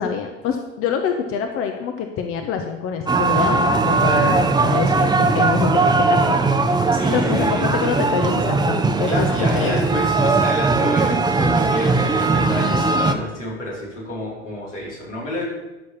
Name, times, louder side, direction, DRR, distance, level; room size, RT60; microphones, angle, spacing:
voice 1, 0.0-6.3 7.1-9.3 9.6-9.8, left 7 dB, 40° left, 5 dB, 1.3 m, -25 dB
sound 1, 3.1-13.1, right 3 dB, 10° right, 1.0 m, -19 dB
voice 2, 6.9-7.9 9.1-15.4, left 1 dB, 85° left, -6 dB, 4.9 m, -29 dB
12.5 x 6.7 x 7.2 m, 1.1 s
figure-of-eight pair, 75°, 35 cm